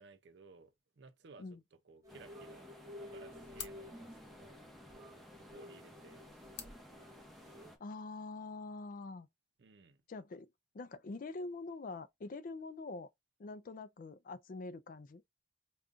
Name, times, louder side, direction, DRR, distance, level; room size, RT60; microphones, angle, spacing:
voice 1, 0.0-1.6 1.8-2.7 3.0-4.6 5.4-6.3 6.6-6.8 9.6-10.0, right 4 dB, 65° right, 0.5 m, -58 dB
sound 1, 2.0-7.7, left 1 dB, 20° right, 1.1 m, -53 dB
sound 2, 2.1-7.8, left 1 dB, ahead, 0.7 m, -56 dB
sound 3, 2.8-7.8, left 7 dB, 65° left, 0.8 m, -54 dB
voice 2, 7.8-9.3 10.1-10.5 10.7-13.1 13.4-15.2, left 3 dB, 50° left, 0.4 m, -45 dB
5.1 x 2.3 x 2.5 m
head